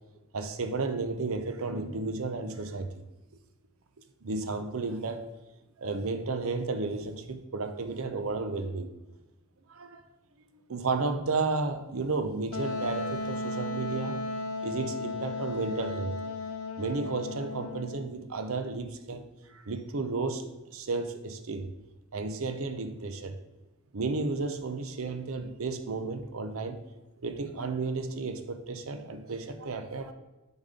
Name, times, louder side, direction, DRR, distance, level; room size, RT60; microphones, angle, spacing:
voice 1, 0.3-2.9 4.2-5.2 5.8-8.9 9.7-10.0 10.7-14.2 14.6-16.1 16.8-21.7 22.1-23.4 23.9-26.8 27.2-30.1, right 3 dB, 70° right, 8 dB, 0.7 m, -33 dB
Wind instrument woodwind instrument, 12.5-18.1, left 2 dB, 80° left, 0.6 m, -35 dB
7.1 x 4.1 x 5.0 m, 1.1 s
head